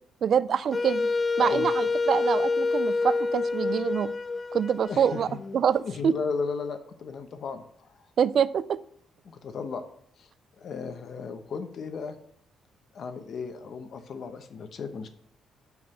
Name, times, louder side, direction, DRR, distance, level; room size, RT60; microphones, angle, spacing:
voice 1, 0.2-1.1 1.4-4.1 4.5-6.1 8.2-8.8, right 8 dB, 55° right, 17 dB, 0.3 m, -25 dB
Wind instrument woodwind instrument, 0.7-5.6, left 3 dB, 30° left, 0.3 m, -27 dB
voice 2, 4.9-5.4 5.8-8.1 9.2-9.8 10.2-12.2 12.9-15.1, left 5 dB, 60° left, 7 dB, 1.0 m, -35 dB
5.4 x 4.7 x 6.3 m, 0.65 s
cardioid pair, 90°, 0 cm